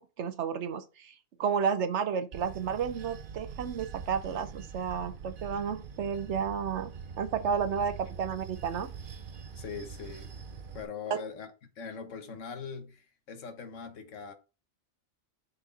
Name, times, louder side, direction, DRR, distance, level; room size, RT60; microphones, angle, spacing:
voice 1, 0.2-1.1 1.4-6.9 7.2-8.9, right 7 dB, 70° right, 1.0 m, -31 dB
Bell / Train, 2.3-10.8, right 6 dB, 50° right, 0.8 m, -44 dB
voice 2, 9.5-10.3 10.7-11.5 11.8-14.3, left 6 dB, 90° left, 1.4 m, -41 dB
7.0 x 4.3 x 4.0 m
omnidirectional pair, 1.2 m